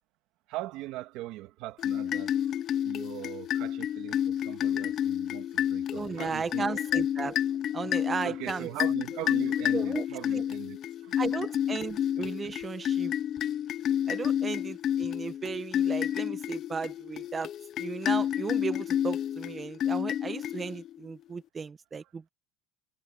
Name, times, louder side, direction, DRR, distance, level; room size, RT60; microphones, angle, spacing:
voice 1, 0.5-2.5 2.8-6.7 8.2-11.2, right 17 dB, 55° right, 1.6 m, -40 dB
sound 1, 1.8-21.0, left 10 dB, 35° left, 0.5 m, -30 dB
voice 2, 5.9-7.4 7.7-8.7 9.7-10.0 10.3-10.4 11.2-13.1 14.1-17.5 17.8-22.3, right 5 dB, 20° right, 0.9 m, -35 dB
cardioid pair, 165°, 0 cm